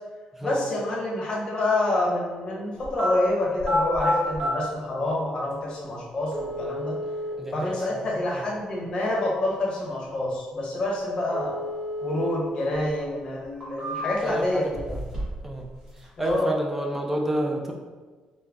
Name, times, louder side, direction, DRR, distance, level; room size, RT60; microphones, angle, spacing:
voice 1, 0.4-7.0 7.5-11.5 12.0-14.8 16.2-16.5, left 1 dB, 40° left, -4 dB, 0.9 m, -27 dB
sound 1, 2.8-3.1 3.6-4.5 5.5-5.6 6.3-7.3 11.3-12.3 12.7-12.8 13.4-14.3 14.7-15.5 15.7-16.3, left 1 dB, 30° right, 1.4 m, -30 dB
voice 2, 7.4-8.0 8.3-8.5 14.2-15.1 15.4-15.7 16.2-17.7, right 1 dB, 10° right, 1 dB, 0.4 m, -29 dB
3.7 x 2.1 x 3.4 m, 1.4 s
cardioid pair, 140°, 2 cm